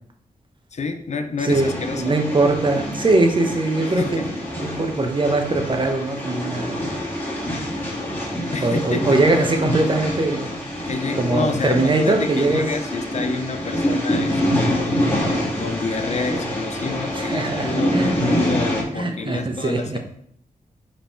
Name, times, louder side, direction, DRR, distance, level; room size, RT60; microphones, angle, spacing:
voice 1, 0.7-2.2 4.0-4.3 8.5-9.2 10.9-15.0 15.6-20.0, left 4 dB, 55° left, 9 dB, 0.7 m, -28 dB
voice 2, 1.4-4.2 4.6-6.8 8.6-10.5 11.2-12.7 17.1-18.1 19.0-20.0, right 2 dB, 35° right, 4 dB, 1.0 m, -21 dB
sound 1, 1.5-18.8, equal, 15° left, 2.0 m, -26 dB
5.1 x 4.4 x 4.4 m, 0.68 s
wide cardioid pair, 80°, 14 cm